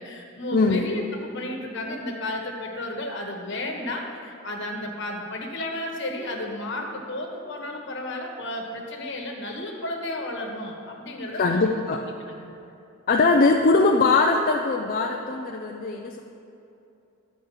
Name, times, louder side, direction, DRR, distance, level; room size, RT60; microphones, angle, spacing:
voice 1, 0.0-12.0 12.3-12.5, left 1 dB, 60° left, 1 dB, 1.3 m, -33 dB
voice 2, 0.5-0.8 11.3-12.1 13.1-16.2, left 3 dB, 45° left, 2 dB, 0.5 m, -21 dB
11.0 x 5.1 x 7.1 m, 2.8 s
head